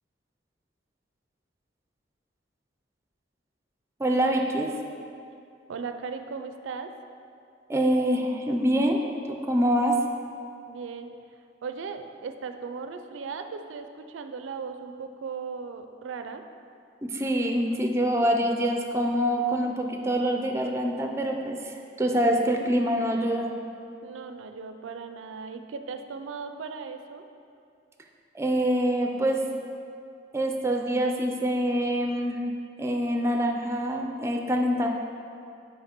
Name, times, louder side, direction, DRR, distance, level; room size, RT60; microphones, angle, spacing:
voice 1, 4.0-4.7 7.7-9.0 9.3-10.0 17.0-23.5 28.3-29.4 30.3-32.4 32.8-34.9, equal, 15° right, 2 dB, 0.4 m, -25 dB
voice 2, 5.7-6.9 10.7-11.1 11.6-16.4 24.0-27.2, right 5 dB, 90° right, 7 dB, 0.4 m, -37 dB
5.8 x 4.8 x 4.4 m, 2.5 s
head